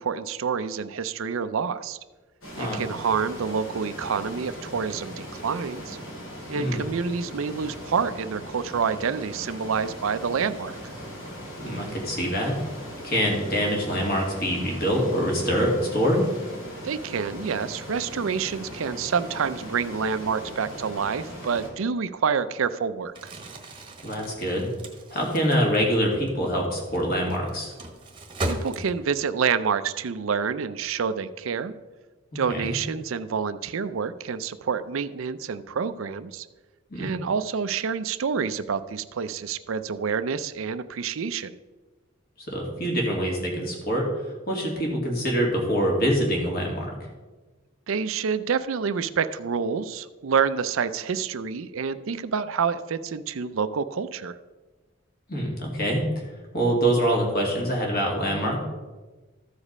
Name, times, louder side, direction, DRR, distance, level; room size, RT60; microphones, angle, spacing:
voice 1, 0.0-2.0 2.6-6.0 6.5-10.8 16.8-23.3 28.4-31.7 32.3-36.5 37.0-41.6 47.9-54.4, right 6 dB, 75° right, 12 dB, 0.5 m, -28 dB
sound 1, 2.4-21.7, equal, 70° left, 2.7 m, -39 dB
voice 2, 11.6-12.6 13.0-16.2 24.0-24.7 25.1-27.7 32.3-32.7 36.9-37.1 42.5-44.1 44.5-46.9 55.3-56.0 56.5-58.6, equal, 45° left, 0 dB, 2.4 m, -25 dB
Crumpling crinkling, 23.1-29.3, right 1 dB, 25° right, 1.1 m, -37 dB
13.5 x 5.0 x 5.4 m, 1.2 s
head